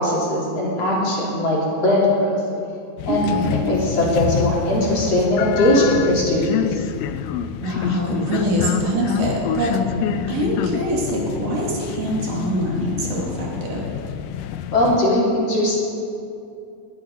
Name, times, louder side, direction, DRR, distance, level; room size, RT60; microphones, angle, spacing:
voice 1, 0.0-2.4 3.0-3.2 3.5-6.8 9.9-10.1 14.7-15.8, left 1 dB, 50° left, -5 dB, 4.0 m, -20 dB
sound 1, 3.0-15.0, left 10 dB, 85° left, 2.3 m, -27 dB
voice 2, 3.1-3.6 7.6-9.8 10.3-13.8, right 1 dB, 70° right, -3 dB, 4.1 m, -24 dB
20.5 x 11.0 x 5.4 m, 2.5 s
omnidirectional pair, 3.9 m